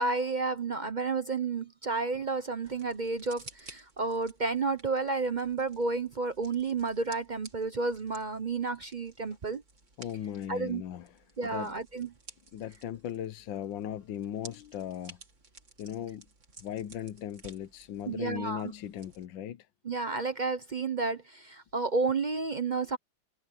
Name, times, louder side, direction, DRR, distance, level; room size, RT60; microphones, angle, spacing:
voice 1, 0.0-9.6 10.5-10.8 11.4-12.1 18.1-18.7 19.8-23.0, right 4 dB, 55° right, 0.5 m, -31 dB
sound 1, 2.6-19.3, right 3 dB, 40° right, 2.8 m, -55 dB
voice 2, 10.0-11.1 11.5-11.7 12.5-15.2 15.8-16.2 16.6-19.7, left 10 dB, 75° left, 1.5 m, -38 dB
omnidirectional pair, 2.1 m